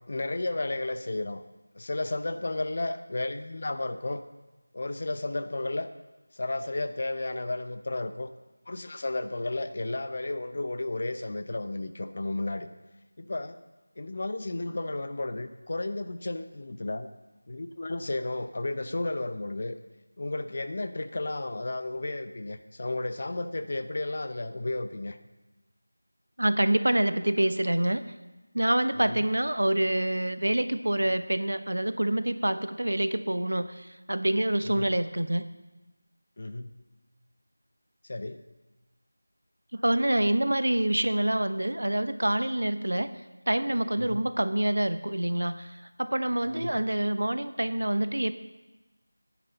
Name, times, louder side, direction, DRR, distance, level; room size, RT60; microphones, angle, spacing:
voice 1, 0.1-1.4 1.7-4.2 4.7-5.9 6.4-8.3 8.7-12.7 13.2-13.6 14.0-17.1 17.5-19.8 20.2-25.2 29.1-29.2 34.8-34.9 36.4-36.7 38.1-38.4 44.0-44.2 46.5-46.8, left 2 dB, 40° left, 10 dB, 0.7 m, -33 dB
voice 2, 26.4-28.0 28.5-35.5 39.7-43.1 43.5-45.7 46.0-48.3, right 1 dB, 70° right, 12 dB, 0.9 m, -26 dB
16.5 x 10.5 x 4.0 m, 1.1 s
figure-of-eight pair, 170°, 0 cm